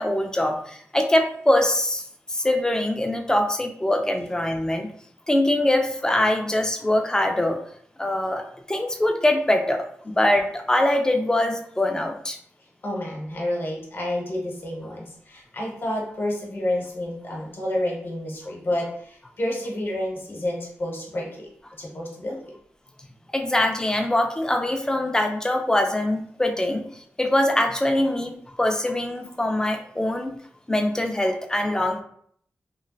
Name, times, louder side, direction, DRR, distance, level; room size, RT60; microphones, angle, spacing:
voice 1, 0.0-2.0 2.3-4.9 5.3-7.6 8.0-8.4 8.7-12.4 23.3-26.9 27.2-30.3 30.7-32.0, left 1 dB, 15° left, 4 dB, 0.4 m, -23 dB
voice 2, 12.8-21.5 21.8-22.4, left 1 dB, 50° left, -2 dB, 1.0 m, -29 dB
3.0 x 2.6 x 2.3 m, 0.62 s
wide cardioid pair, 85°, 5 cm